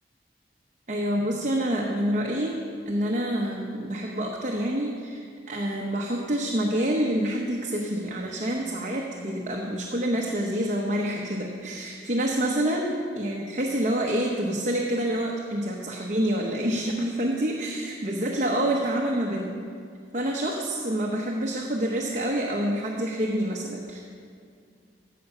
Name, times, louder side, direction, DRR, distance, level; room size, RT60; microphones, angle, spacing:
voice 1, 0.9-19.6 20.1-24.0, right 1 dB, 40° right, -1 dB, 0.9 m, -27 dB
15.0 x 6.8 x 5.5 m, 2.2 s
head